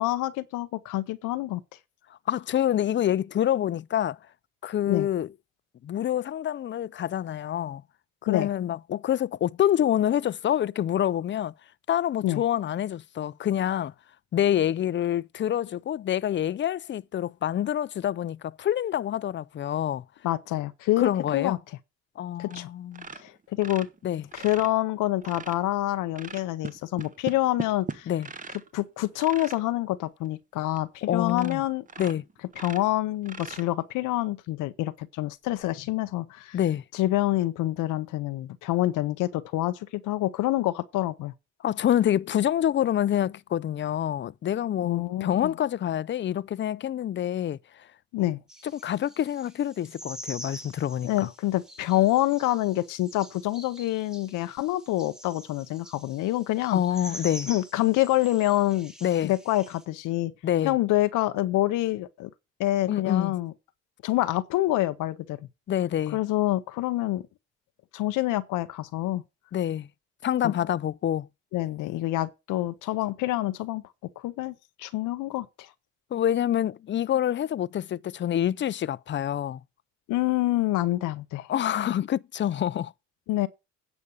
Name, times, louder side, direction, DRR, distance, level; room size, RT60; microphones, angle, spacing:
voice 1, 0.0-1.6 4.9-5.1 8.3-8.5 12.2-12.4 20.2-21.6 22.4-22.7 23.1-23.9 24.3-28.1 28.7-31.8 32.6-36.6 36.9-41.3 44.8-45.5 48.1-48.4 51.0-56.8 57.5-58.9 59.2-60.3 60.6-62.3 62.6-63.5 64.0-65.4 66.1-67.2 67.9-69.2 70.4-70.5 71.5-73.8 74.2-74.5 74.8-75.7 80.1-81.5 83.3-83.5, left 16 dB, 90° left, 0.7 m, -27 dB
voice 2, 2.3-4.2 4.6-5.3 5.8-7.8 8.2-11.5 11.9-13.9 14.3-20.0 21.0-21.6 22.2-23.1 24.0-24.2 28.1-28.3 31.1-31.6 32.0-32.2 36.5-36.8 41.6-47.6 48.6-51.3 56.7-57.5 59.0-59.3 60.4-60.7 62.9-63.3 65.7-66.2 69.5-69.9 70.2-71.3 76.1-79.6 81.5-82.9, left 11 dB, 40° left, 0.4 m, -27 dB
sound 1, 22.5-22.7 22.9-25.6 26.1-28.7 29.1-29.6 30.2-30.3 30.7-30.8 31.3-31.6 31.9-34.0 35.5-35.6, right 4 dB, 25° right, 0.9 m, -39 dB
sound 2, 48.5-59.8, equal, ahead, 1.5 m, -45 dB
9.7 x 5.1 x 7.0 m
cardioid pair, 90°, 30 cm